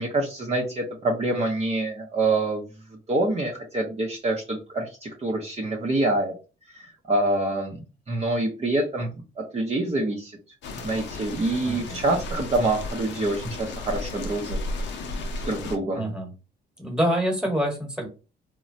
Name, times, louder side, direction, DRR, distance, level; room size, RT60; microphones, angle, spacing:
voice 1, 0.0-2.6 3.1-6.3 6.7-10.3 10.8-14.6 15.4-16.1, right 2 dB, 30° right, -2 dB, 0.6 m, -26 dB
sound 1, 10.6-15.8, left 2 dB, 65° left, 0.6 m, -34 dB
voice 2, 11.6-12.0 15.9-16.3 16.8-18.1, equal, 5° right, 1 dB, 1.2 m, -26 dB
3.1 x 2.2 x 2.6 m, 0.32 s
cardioid pair, 90°, 20 cm